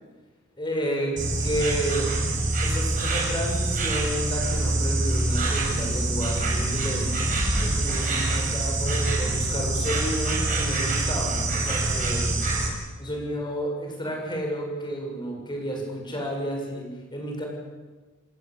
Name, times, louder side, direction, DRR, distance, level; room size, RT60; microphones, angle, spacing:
voice 1, 0.6-2.1 2.6-7.1 7.6-12.4 13.0-17.5, equal, 20° left, 1 dB, 7.5 m, -31 dB
Insect, 1.2-12.7, right 2 dB, 40° right, 7.5 m, -25 dB
29.0 x 19.0 x 8.7 m, 1.3 s
head